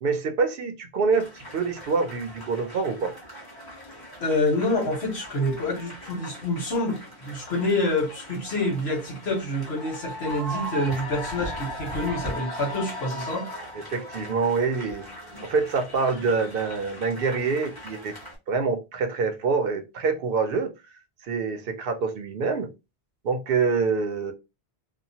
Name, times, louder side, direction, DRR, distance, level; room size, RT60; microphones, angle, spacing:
voice 1, 0.0-3.1 13.7-15.1 15.4-18.2 18.5-20.7 21.2-22.7 23.2-24.3, right 4 dB, 65° right, 0.7 m, -26 dB
sound 1, 1.1-18.4, equal, 20° left, 1.1 m, -39 dB
voice 2, 4.2-13.5 15.3-15.4, left 1 dB, 80° left, 1.5 m, -27 dB
2.9 x 2.2 x 2.7 m
omnidirectional pair, 1.1 m